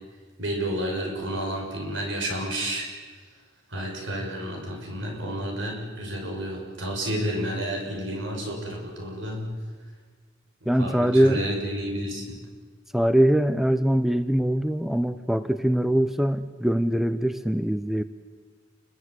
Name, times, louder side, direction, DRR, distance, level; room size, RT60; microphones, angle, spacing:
voice 1, 0.4-2.9 3.7-9.5 10.6-12.4, right 1 dB, 70° right, 1 dB, 6.4 m, -30 dB
voice 2, 10.7-11.4 12.9-18.0, equal, ahead, 11 dB, 0.7 m, -22 dB
29.5 x 21.5 x 8.1 m, 1.5 s
head